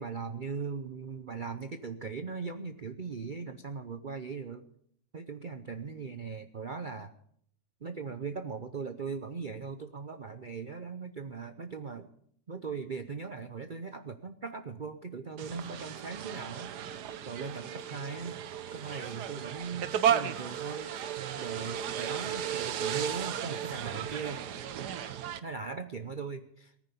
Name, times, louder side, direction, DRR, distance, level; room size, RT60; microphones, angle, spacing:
voice 1, 0.0-4.6 5.1-7.1 7.8-12.1 12.5-16.7 17.3-18.4 18.7-20.9 21.4-24.4 25.4-26.7, right 5 dB, 45° right, 9 dB, 0.6 m, -39 dB
sound 1, 15.4-25.4, right 9 dB, 75° right, 1.4 m, -34 dB
18.5 x 9.9 x 6.9 m, 0.66 s
omnidirectional pair, 1.8 m